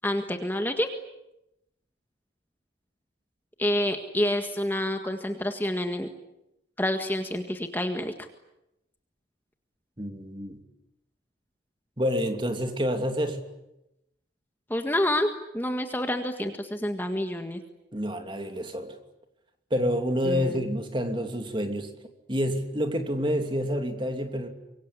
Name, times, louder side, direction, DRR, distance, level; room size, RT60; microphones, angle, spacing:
voice 1, 0.0-0.9 3.6-6.1 6.8-8.1 14.7-15.3 15.5-17.6 20.2-20.6, left 1 dB, 10° left, 6 dB, 1.7 m, -28 dB
voice 2, 10.0-10.6 12.0-13.4 17.9-19.0 19.7-21.9 22.3-24.5, equal, 25° right, 6 dB, 2.9 m, -28 dB
26.0 x 23.5 x 9.8 m, 0.86 s
head